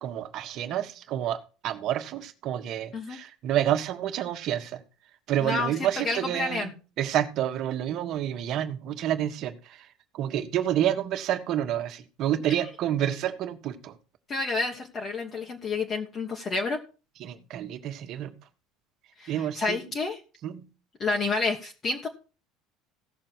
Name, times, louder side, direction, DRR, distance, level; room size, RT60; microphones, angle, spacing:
voice 1, 0.0-4.8 5.3-9.9 10.1-14.0 17.2-18.3 19.3-19.8 20.4-20.7, right 11 dB, 40° right, 7 dB, 1.5 m, -29 dB
voice 2, 6.0-6.7 14.3-16.8 19.2-20.2 21.0-22.1, left 3 dB, 25° left, 1 dB, 1.4 m, -29 dB
16.5 x 6.6 x 4.6 m, 0.35 s
cardioid pair, 170°, 0 cm